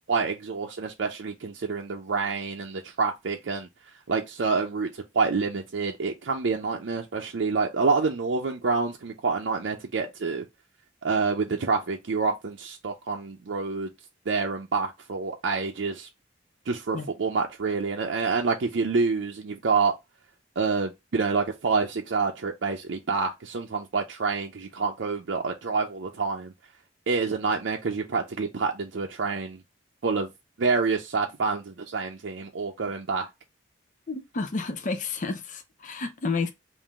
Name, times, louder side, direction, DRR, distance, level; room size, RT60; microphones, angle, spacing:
voice 1, 0.1-3.7 4.1-4.9 5.1-10.4 11.0-13.9 14.3-16.1 16.7-19.9 20.6-26.5 27.1-29.6 30.0-30.3 30.6-33.3, right 4 dB, 75° right, 0.5 m, -27 dB
voice 2, 34.1-36.5, left 4 dB, 40° left, 0.5 m, -30 dB
3.7 x 2.5 x 3.5 m
head